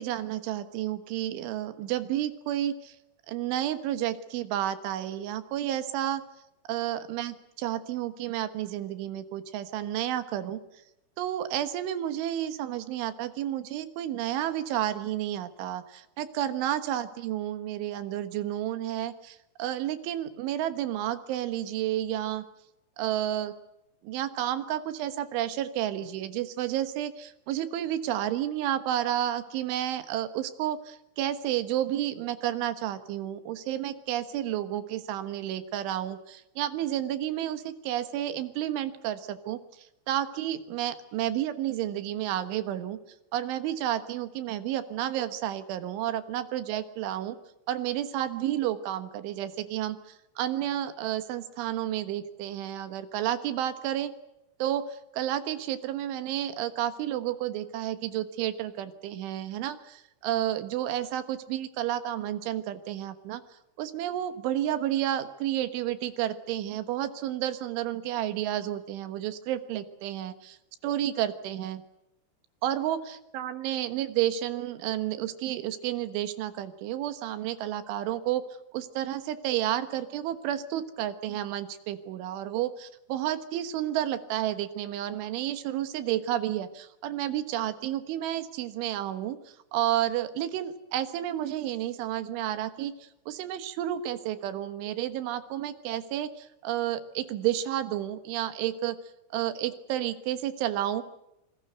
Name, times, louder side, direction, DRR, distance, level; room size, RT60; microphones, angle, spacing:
voice 1, 0.0-3.0 3.3-6.2 6.7-10.6 11.2-22.4 23.0-23.5 24.0-43.0 43.3-47.4 47.7-54.1 54.6-63.4 63.8-70.6 70.8-71.8 72.6-73.0 73.3-78.4 78.7-89.4 89.7-99.0 99.3-101.0, right 12 dB, 80° right, 11 dB, 3.7 m, -31 dB
27.0 x 20.0 x 7.9 m, 0.88 s
omnidirectional pair, 5.5 m